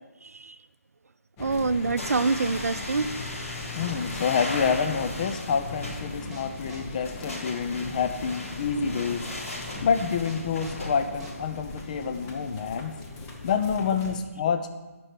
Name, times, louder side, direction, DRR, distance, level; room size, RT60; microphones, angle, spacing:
voice 1, 0.2-0.6 1.4-3.1 9.9-10.1, right 4 dB, 80° right, 12 dB, 0.5 m, -26 dB
sound 1, 1.4-14.2, left 3 dB, 15° left, 0.9 m, -40 dB
sound 2, 2.0-10.9, left 1 dB, 70° left, 3.8 m, -38 dB
voice 2, 3.8-9.3 9.8-13.0 13.4-14.7, left 6 dB, 30° left, 8 dB, 0.5 m, -27 dB
sound 3, 3.9-11.7, right 1 dB, 5° right, 1.5 m, -43 dB
10.0 x 6.0 x 6.4 m, 1.2 s
figure-of-eight pair, 155°, 8 cm